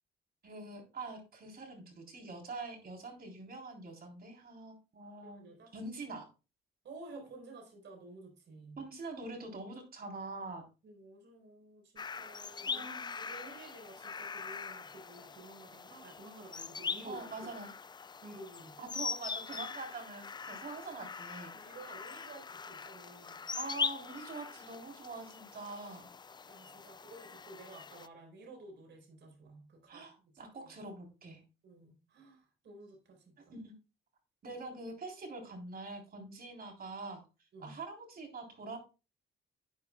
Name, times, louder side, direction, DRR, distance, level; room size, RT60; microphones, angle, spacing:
voice 1, 0.4-5.4 5.7-6.3 8.8-10.6 12.7-13.1 17.0-17.7 18.8-21.5 23.6-26.1 29.9-31.4 33.5-33.7 34.4-37.2 37.6-38.8, right 3 dB, 50° right, 3 dB, 3.7 m, -44 dB
voice 2, 5.2-5.7 6.8-8.8 10.8-17.5 18.2-18.8 21.5-23.4 26.5-30.7 31.6-33.5 34.5-34.6 37.5-37.8, right 2 dB, 65° right, 3 dB, 4.4 m, -52 dB
sound 1, 12.0-28.1, left 5 dB, 20° left, 0.4 m, -42 dB
11.0 x 9.4 x 2.3 m, 0.30 s
cardioid pair, 90°, 20 cm